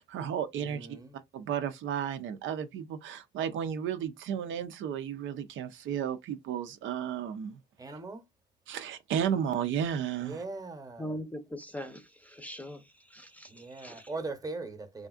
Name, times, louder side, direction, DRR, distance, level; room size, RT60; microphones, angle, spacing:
voice 1, 0.0-0.9 1.3-7.6 8.7-10.4, right 8 dB, 75° right, 0.5 m, -33 dB
voice 2, 0.6-1.2 7.8-8.2 10.2-11.2 13.5-15.1, right 3 dB, 20° right, 0.9 m, -40 dB
voice 3, 11.0-12.8 13.1-14.1, equal, 5° left, 0.6 m, -41 dB
3.4 x 2.4 x 2.4 m
cardioid pair, 90°, 20 cm